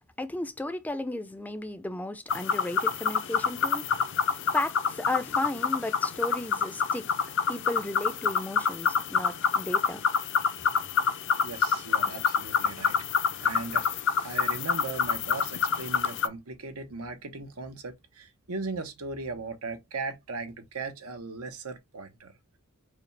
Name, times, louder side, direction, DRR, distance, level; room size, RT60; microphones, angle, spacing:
voice 1, 0.2-4.0 4.5-7.1 7.5-10.0, left 1 dB, 5° left, 0.4 m, -34 dB
sound 1, 2.3-16.3, left 6 dB, 55° left, 0.5 m, -27 dB
voice 2, 11.4-13.0 13.4-22.3, right 3 dB, 90° right, 1.0 m, -38 dB
4.9 x 2.4 x 3.2 m
head